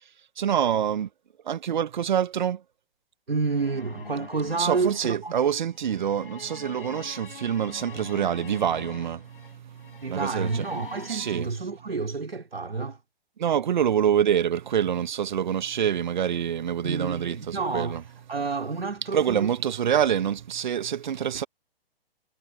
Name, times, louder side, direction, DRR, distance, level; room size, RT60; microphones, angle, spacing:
voice 1, 0.4-1.1 1.4-2.6 4.6-10.6 11.1-11.5 13.4-18.0 19.1-21.4, right 9 dB, 50° right, 1.3 m, -26 dB
voice 2, 3.3-5.3 10.0-13.0 16.8-19.5, right 4 dB, 70° right, 3.5 m, -29 dB
sound 1, 3.5-11.4, left 5 dB, 65° left, 4.4 m, -44 dB
figure-of-eight pair, 120°, 30 cm